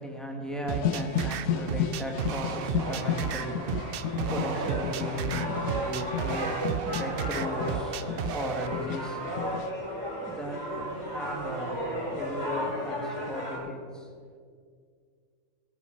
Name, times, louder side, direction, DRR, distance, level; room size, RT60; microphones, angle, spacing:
voice 1, 0.0-14.1, equal, ahead, 1 dB, 1.6 m, -37 dB
sound 1, 0.7-9.7, left 8 dB, 80° left, 1.1 m, -34 dB
sound 2, 0.7-8.7, right 9 dB, 65° right, 0.6 m, -34 dB
sound 3, 2.7-13.6, equal, 30° left, 3.9 m, -35 dB
17.5 x 7.3 x 5.2 m, 2.1 s
omnidirectional pair, 1.4 m